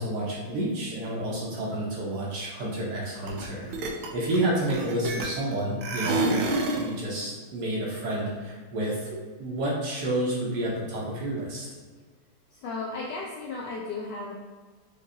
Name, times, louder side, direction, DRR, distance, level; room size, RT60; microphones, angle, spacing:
voice 1, 0.0-3.7 4.1-6.5 6.7-11.7, right 1 dB, 60° right, -4 dB, 1.3 m, -30 dB
sound 1, 3.3-3.5 3.7-5.5 5.8-6.9, right 2 dB, 80° right, 1.4 m, -28 dB
voice 2, 12.5-14.3, left 3 dB, 75° left, -2 dB, 1.0 m, -35 dB
5.1 x 2.9 x 2.7 m, 1.5 s
omnidirectional pair, 2.3 m